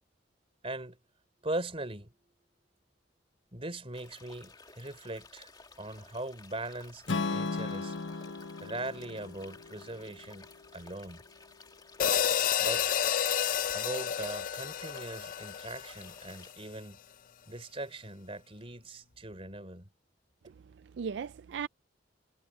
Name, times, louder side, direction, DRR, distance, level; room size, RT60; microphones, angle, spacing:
voice 1, 0.6-1.0 1.4-2.1 3.5-5.5 5.8-7.9 8.6-11.2 12.6-12.9 13.7-17.0 17.5-19.9, right 2 dB, 30° right, 3.4 m, -40 dB
sound 1, 3.9-16.5, left 3 dB, 20° left, 2.3 m, -55 dB
Strum, 7.1-11.3, left 3 dB, 90° left, 1.0 m, -37 dB
sound 2, 12.0-16.4, left 9 dB, 45° left, 0.4 m, -30 dB
voice 2, 20.5-21.7, right 6 dB, 65° right, 0.4 m, -38 dB
head